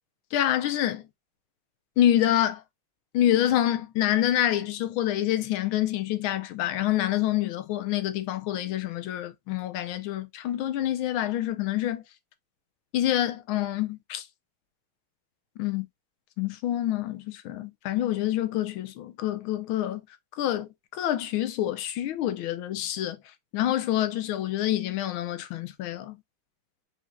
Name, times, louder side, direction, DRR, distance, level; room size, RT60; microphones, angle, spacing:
voice 1, 0.3-1.0 2.0-2.6 3.1-12.0 12.9-14.2 15.6-15.9 16.4-20.0 20.4-23.2 23.5-26.2, left 12 dB, 75° left, 1.5 m, -27 dB
4.8 x 4.0 x 2.2 m
omnidirectional pair, 2.4 m